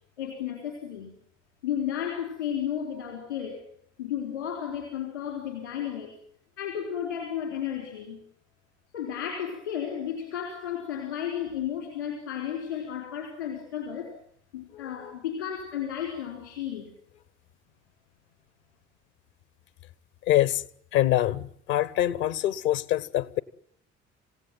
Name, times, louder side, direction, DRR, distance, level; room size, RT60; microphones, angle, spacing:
voice 1, 0.2-1.1 1.6-3.6 4.0-6.1 6.6-8.2 8.9-14.1 14.5-16.9, left 9 dB, 80° left, 3.7 m, -33 dB
voice 2, 14.7-15.1 20.3-20.6 20.9-23.4, left 13 dB, 65° left, 1.0 m, -25 dB
28.0 x 16.5 x 9.1 m
figure-of-eight pair, 45°, 35 cm